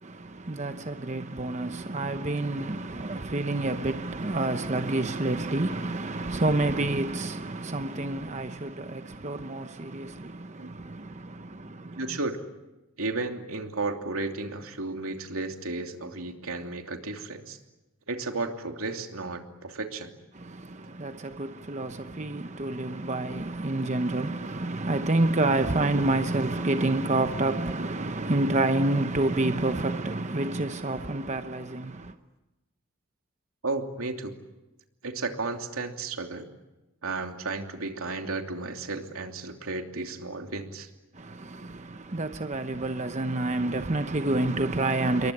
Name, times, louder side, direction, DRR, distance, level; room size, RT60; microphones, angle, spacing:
voice 1, 0.0-12.2 20.3-32.1 41.1-45.3, right 2 dB, 35° right, 0.9 m, -28 dB
voice 2, 11.9-12.4 13.0-17.6 18.1-20.1 33.6-34.3 35.0-36.5 37.0-40.9, right 3 dB, 85° right, 2.9 m, -33 dB
28.0 x 23.0 x 8.7 m
head